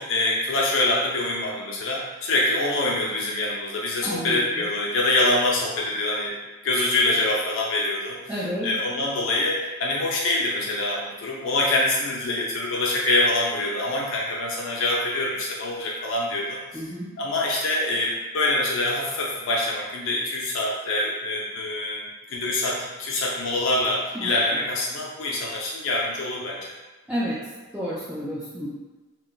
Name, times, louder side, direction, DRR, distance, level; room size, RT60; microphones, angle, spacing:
voice 1, 0.0-6.4 6.6-8.4 8.6-16.8 17.2-22.0 22.3-26.7, left 2 dB, 65° left, -3 dB, 0.4 m, -25 dB
voice 2, 4.0-4.4 8.3-8.7 16.7-17.1 24.1-24.3 27.1-27.4 27.7-28.7, equal, 5° right, -10 dB, 0.4 m, -30 dB
2.4 x 2.2 x 3.7 m, 1.2 s
head